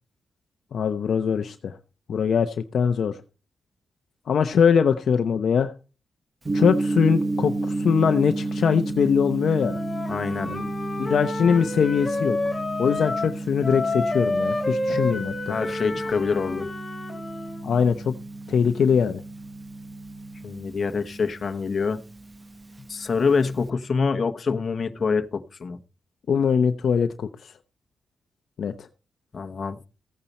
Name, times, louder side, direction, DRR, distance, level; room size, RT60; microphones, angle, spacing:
voice 1, 0.7-1.8 2.1-3.2 4.3-5.7 6.5-9.8 10.5-10.7 11.0-12.4 12.8-15.6 17.6-18.1 18.5-19.2 26.3-27.5 28.6-28.9, left 6 dB, 60° left, 0.7 m, -22 dB
Gong, 6.4-23.7, right 2 dB, 20° right, 0.9 m, -32 dB
Wind instrument woodwind instrument, 9.6-13.4 13.6-17.6, left 2 dB, 10° left, 3.3 m, -29 dB
voice 2, 10.1-10.5 14.9-15.0 15.5-16.7 20.4-22.0 22.9-25.8 29.3-29.8, left 5 dB, 40° left, 1.1 m, -25 dB
15.0 x 8.8 x 4.2 m
wide cardioid pair, 140°, 0 cm